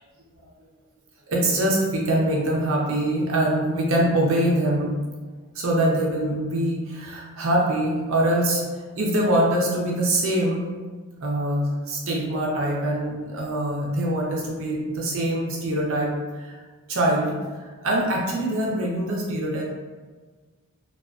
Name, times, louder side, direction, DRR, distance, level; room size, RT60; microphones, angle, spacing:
voice 1, 1.3-5.0 5.5-8.6 8.9-10.7 11.2-16.1 16.4-16.6 16.9-19.6, right 1 dB, 65° right, -2 dB, 0.6 m, -24 dB
2.4 x 2.3 x 2.3 m, 1.4 s
head